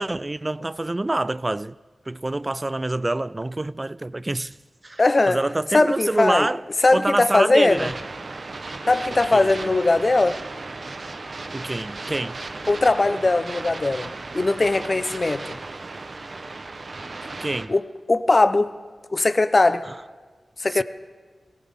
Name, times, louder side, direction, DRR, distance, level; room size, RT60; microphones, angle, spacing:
voice 1, 0.0-1.7 2.1-4.6 4.8-6.6 6.9-7.9 9.3-9.7 11.5-12.4 17.4-17.7 19.8-19.9 20.7-20.8, right 2 dB, 30° right, 0.4 m, -26 dB
voice 2, 5.0-5.4 5.7-6.5 6.8-7.9 8.9-10.4 12.7-15.6 17.7-17.8 18.1-18.7 19.1-19.8 20.6-20.8, left 2 dB, 45° left, 0.8 m, -19 dB
sound 1, 7.7-17.7, right 3 dB, 60° right, 1.0 m, -35 dB
21.5 x 17.0 x 3.7 m
cardioid pair, 40°, 0 cm